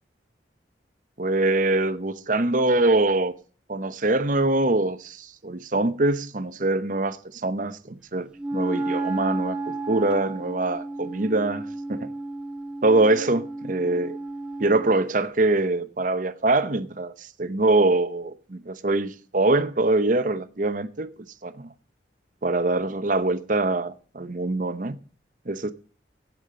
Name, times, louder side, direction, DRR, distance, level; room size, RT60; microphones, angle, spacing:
voice 1, 1.2-3.3 3.7-12.1 12.8-14.2 14.6-21.1 21.4-21.7 22.4-25.0 25.5-25.7, right 2 dB, 45° right, 0.8 m, -24 dB
Wind instrument woodwind instrument, 8.4-15.0, right 2 dB, 5° right, 1.4 m, -32 dB
8.8 x 8.4 x 7.6 m
head